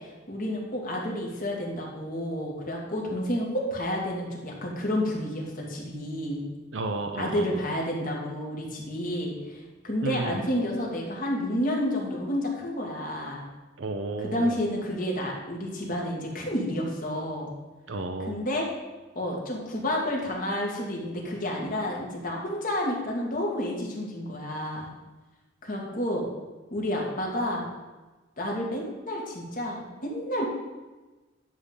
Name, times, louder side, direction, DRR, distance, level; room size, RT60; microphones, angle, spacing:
voice 1, 0.0-6.4 7.2-13.4 14.2-17.5 18.3-18.7 19.1-24.9 25.6-26.2 26.7-27.7 28.4-30.4, left 1 dB, 45° left, -2 dB, 2.2 m, -30 dB
voice 2, 6.7-7.6 10.0-10.4 13.8-14.6 17.9-18.4, right 2 dB, 70° right, 4 dB, 0.7 m, -32 dB
11.0 x 3.8 x 7.3 m, 1.2 s
head